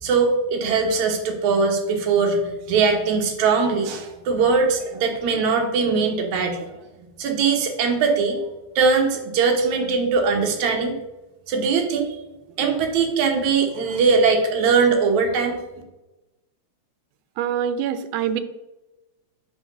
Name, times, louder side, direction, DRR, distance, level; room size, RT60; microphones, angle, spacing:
voice 1, 0.0-6.7 7.2-8.4 8.8-10.9 11.5-12.2 12.6-15.6, right 4 dB, 70° right, 3 dB, 2.4 m, -21 dB
voice 2, 17.4-18.4, right 9 dB, 90° right, 12 dB, 2.1 m, -24 dB
8.8 x 3.9 x 6.0 m, 1.0 s
omnidirectional pair, 3.5 m